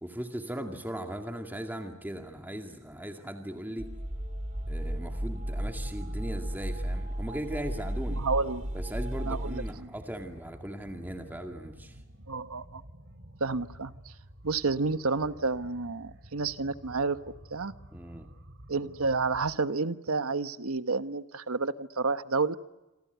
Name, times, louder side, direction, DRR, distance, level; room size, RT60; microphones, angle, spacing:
voice 1, 0.0-3.9 4.7-8.2 8.7-12.0 17.9-18.3, right 1 dB, 10° right, 4 dB, 2.1 m, -38 dB
sound 1, 3.8-9.7, right 1 dB, 35° right, 3.3 m, -34 dB
sound 2, 4.6-19.6, right 1 dB, 55° right, 3.6 m, -51 dB
voice 2, 8.1-8.7 9.2-9.9 12.3-12.8 13.4-14.1 14.4-17.2 17.5-17.7 18.7-22.6, right 4 dB, 80° right, 12 dB, 1.2 m, -30 dB
27.5 x 26.5 x 8.1 m, 1.0 s
head